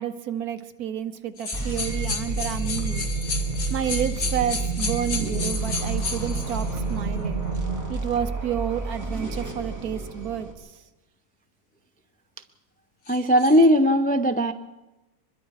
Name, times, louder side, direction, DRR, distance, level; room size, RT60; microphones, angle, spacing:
voice 1, 0.0-3.1 3.7-7.4 7.9-10.7, right 9 dB, 70° right, 10 dB, 1.5 m, -30 dB
sound 1, 1.4-6.8 7.5-7.6 13.1-13.6, left 4 dB, 75° left, 2.3 m, -33 dB
sound 2, 1.5-10.5, right 3 dB, 10° right, 3.0 m, -31 dB
sound 3, 1.7-7.9, right 4 dB, 30° right, 2.1 m, -32 dB
voice 2, 13.1-14.5, equal, 10° left, 8 dB, 0.4 m, -18 dB
24.5 x 21.5 x 4.9 m, 1.0 s
omnidirectional pair, 1.7 m